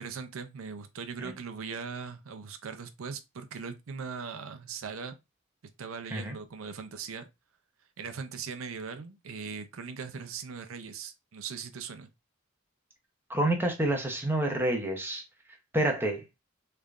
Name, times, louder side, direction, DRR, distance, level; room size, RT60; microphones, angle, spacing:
voice 1, 0.0-5.2 5.8-7.3 8.0-12.1, right 5 dB, 85° right, 0.6 m, -40 dB
voice 2, 13.3-15.2 15.7-16.2, right 1 dB, 10° right, 0.7 m, -28 dB
3.6 x 3.3 x 2.4 m
head